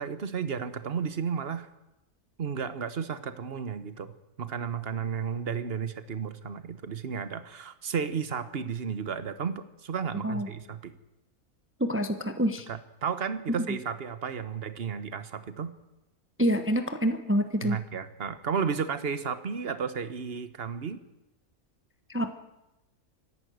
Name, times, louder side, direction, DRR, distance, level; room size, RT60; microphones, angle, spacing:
voice 1, 0.0-1.7 2.4-4.1 4.4-10.9 12.7-15.7 17.6-21.0, right 6 dB, 45° right, 12 dB, 1.3 m, -33 dB
voice 2, 11.8-12.6 16.4-17.8 22.1-22.3, equal, 10° right, 8 dB, 1.0 m, -26 dB
24.5 x 11.5 x 9.4 m, 0.94 s
omnidirectional pair, 1.5 m